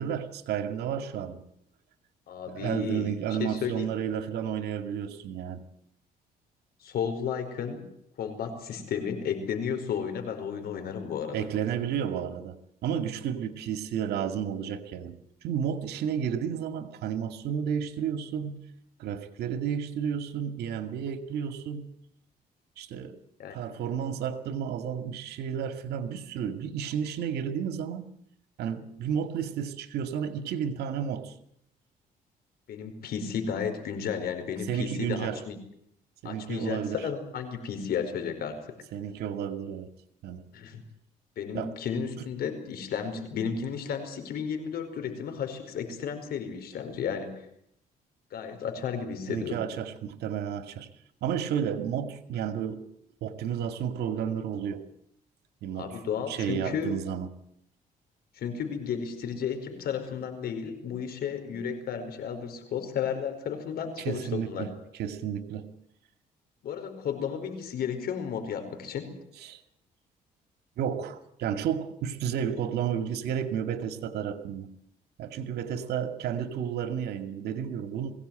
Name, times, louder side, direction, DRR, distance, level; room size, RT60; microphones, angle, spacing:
voice 1, 0.0-1.4 2.5-5.6 11.3-12.6 12.8-15.2 15.4-18.6 19.0-21.9 22.8-23.2 23.5-28.1 28.6-31.3 34.7-35.4 36.2-37.0 38.9-39.9 40.2-40.5 41.5-41.7 49.3-50.9 51.2-52.8 53.2-54.8 55.6-55.9 56.3-57.3 64.0-65.7 69.4-69.6 70.8-74.7 75.2-78.1, right 8 dB, 85° right, 9 dB, 2.2 m, -32 dB
voice 2, 2.3-3.1 3.4-3.9 6.8-7.8 8.2-11.5 23.4-23.6 32.7-35.6 36.2-38.8 40.5-40.8 41.4-47.3 48.3-49.6 55.7-56.9 58.3-64.7 66.6-69.1 75.7-75.9, left 7 dB, 70° left, 8 dB, 4.9 m, -33 dB
21.5 x 17.5 x 9.1 m, 0.72 s
cardioid pair, 95°, 16 cm